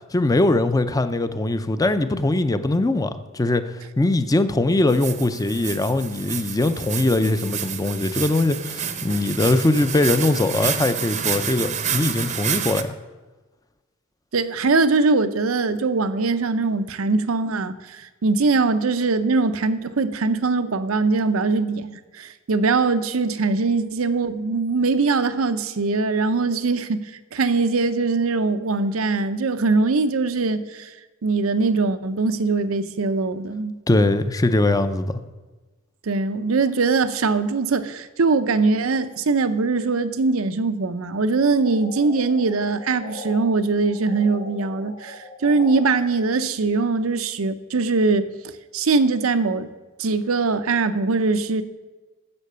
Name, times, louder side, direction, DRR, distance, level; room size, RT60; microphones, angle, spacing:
voice 1, 0.1-12.9 33.9-35.2, left 2 dB, 15° left, 0.5 m, -21 dB
sound 1, 4.9-12.8, right 8 dB, 35° right, 0.7 m, -29 dB
voice 2, 14.3-27.0 27.3-30.9 31.2-33.7 36.1-48.3 48.7-49.7 50.0-51.6, right 3 dB, 85° right, 0.6 m, -22 dB
sound 2, 41.3-43.4 43.7-45.8, left 2 dB, 90° left, 3.0 m, -39 dB
9.7 x 7.5 x 6.7 m
head